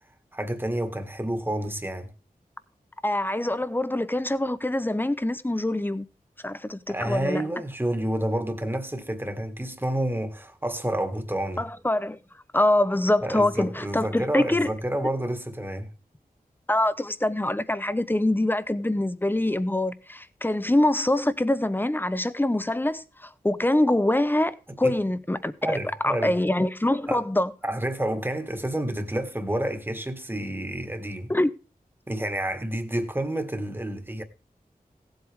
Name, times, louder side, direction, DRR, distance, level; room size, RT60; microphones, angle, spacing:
voice 1, 0.3-2.1 6.9-11.6 13.2-15.9 24.8-25.0 25.6-26.3 27.1-27.2 27.6-31.3 32.1-34.2, right 1 dB, 15° right, 1.7 m, -29 dB
voice 2, 3.0-6.1 6.4-7.5 11.6-12.2 12.5-14.7 16.7-25.8 26.0-27.5 31.3-31.5, left 1 dB, 15° left, 0.8 m, -24 dB
17.0 x 8.0 x 3.5 m
wide cardioid pair, 90°, 15 cm